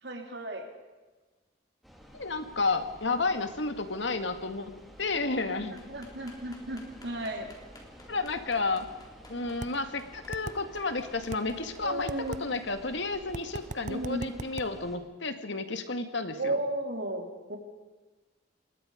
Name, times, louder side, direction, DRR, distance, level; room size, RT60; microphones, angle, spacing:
voice 1, 0.0-0.7 5.4-7.5 11.8-12.4 13.9-14.3 16.3-17.6, right 1 dB, 60° right, 2 dB, 4.0 m, -34 dB
sound 1, 1.8-15.0, equal, ahead, 3.3 m, -52 dB
voice 2, 2.1-5.8 8.1-8.9 9.3-16.6, left 3 dB, 75° left, 8 dB, 2.1 m, -31 dB
sound 2, 5.8-12.6, left 2 dB, 20° left, 3.5 m, -55 dB
sound 3, 9.6-9.7 10.3-10.6 11.3-11.4 12.1-12.4 13.3-14.7, right 3 dB, 40° right, 0.6 m, -37 dB
27.5 x 21.5 x 5.2 m, 1.2 s
head